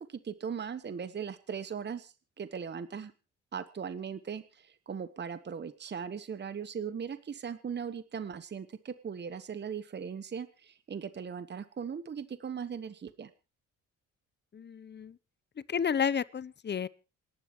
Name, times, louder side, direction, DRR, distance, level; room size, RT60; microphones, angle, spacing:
voice 1, 0.0-3.1 3.5-13.3, right 7 dB, 35° right, 1.2 m, -39 dB
voice 2, 14.5-15.1 15.7-16.9, left 7 dB, 35° left, 0.8 m, -31 dB
27.5 x 11.5 x 3.2 m
cardioid pair, 90°, 30 cm